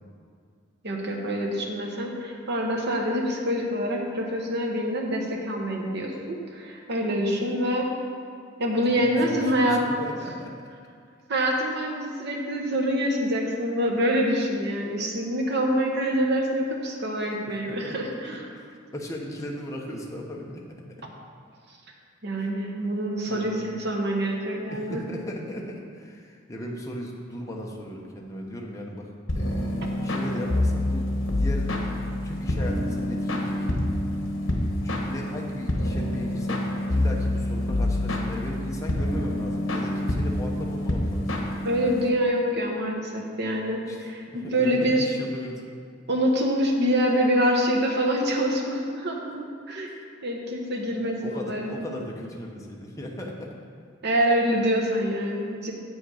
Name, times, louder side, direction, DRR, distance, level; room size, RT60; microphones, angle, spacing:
voice 1, 0.8-7.9 8.6-9.8 11.3-18.4 22.2-25.0 41.6-45.1 46.1-49.9 50.2-51.9 54.0-55.7, equal, 55° right, 0 dB, 1.2 m, -26 dB
voice 2, 9.0-10.6 17.6-18.0 18.2-21.0 22.4-22.7 23.2-23.6 24.7-29.1 29.4-31.7 32.2-33.7 34.5-41.5 43.8-44.0 44.3-45.6 51.0-53.6, left 1 dB, 15° left, -1 dB, 0.9 m, -37 dB
sound 1, 29.3-42.1, left 1 dB, 70° left, 1.2 m, -27 dB
8.3 x 6.4 x 4.9 m, 2.2 s
head